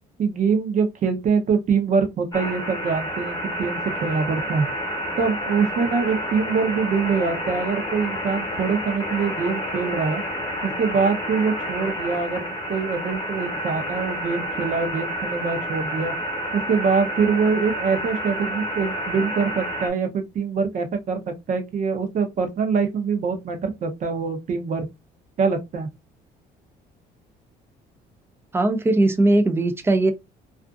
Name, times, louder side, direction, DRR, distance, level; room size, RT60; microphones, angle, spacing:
voice 1, 0.2-4.7 5.2-10.2 10.6-16.1 16.5-24.8 25.4-25.9, right 5 dB, 50° right, 0.7 m, -24 dB
sound 1, 2.3-19.9, equal, 25° left, 1.0 m, -29 dB
voice 2, 28.5-30.1, right 2 dB, 15° right, 0.5 m, -19 dB
2.5 x 2.4 x 2.4 m
cardioid pair, 110°, 17 cm